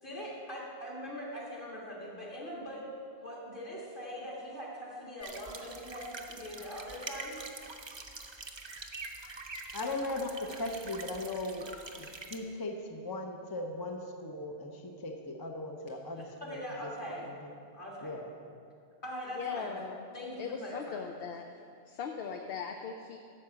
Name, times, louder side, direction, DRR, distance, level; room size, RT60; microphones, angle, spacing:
voice 1, 0.0-2.9 3.2-7.3 16.4-17.4 17.7-18.3 19.0-21.1, equal, 50° left, -5 dB, 2.6 m, -42 dB
sound 1, 5.2-12.4, right 3 dB, 30° right, 0.6 m, -45 dB
voice 2, 9.7-17.4 18.0-18.3, left 2 dB, 25° left, 2 dB, 0.6 m, -38 dB
voice 3, 19.4-20.0 20.4-21.5 21.9-23.2, left 6 dB, 65° left, 4 dB, 0.8 m, -39 dB
12.0 x 4.7 x 7.7 m, 2.4 s
omnidirectional pair, 1.1 m